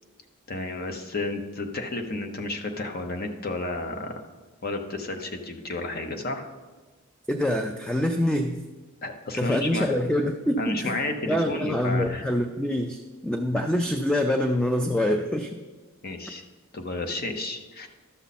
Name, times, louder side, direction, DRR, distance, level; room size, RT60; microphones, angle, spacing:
voice 1, 0.5-4.2 4.6-6.5 9.0-9.9 10.6-12.3 16.0-16.4 16.7-17.9, left 2 dB, 50° left, 6 dB, 0.8 m, -32 dB
voice 2, 7.3-8.6 9.4-11.0 11.3-15.6, left 1 dB, 5° left, 5 dB, 0.4 m, -25 dB
12.5 x 6.9 x 4.2 m, 1.3 s
head